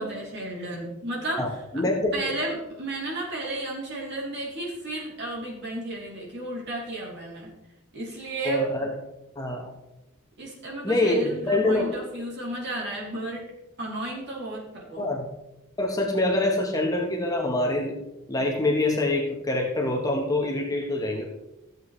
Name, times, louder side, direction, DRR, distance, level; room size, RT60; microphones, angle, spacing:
voice 1, 0.0-1.5 2.1-7.5 7.9-8.7 10.4-13.4 13.8-15.1, right 2 dB, 50° right, -4 dB, 3.2 m, -33 dB
voice 2, 1.4-2.3 8.4-8.9 9.4-9.6 10.8-12.0 15.0-15.2 15.8-18.0 18.3-21.2, left 2 dB, 15° left, 0 dB, 1.2 m, -25 dB
13.5 x 7.9 x 3.2 m, 0.95 s
head